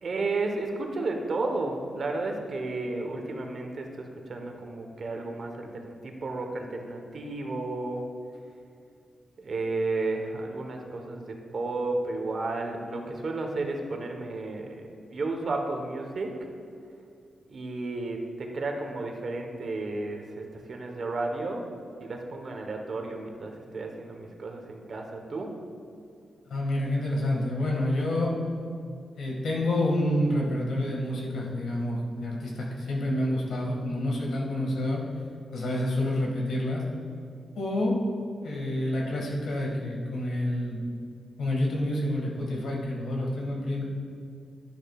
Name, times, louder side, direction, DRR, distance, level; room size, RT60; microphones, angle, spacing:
voice 1, 0.0-8.0 9.4-16.4 17.5-21.7 22.0-25.5, right 2 dB, 50° right, 3 dB, 1.1 m, -33 dB
voice 2, 26.5-28.3 29.1-35.0 35.5-36.8 37.6-38.0 38.4-40.8 41.4-43.8, left 1 dB, 90° left, -2 dB, 2.0 m, -28 dB
11.5 x 10.5 x 2.4 m, 2.4 s
wide cardioid pair, 115°, 0 cm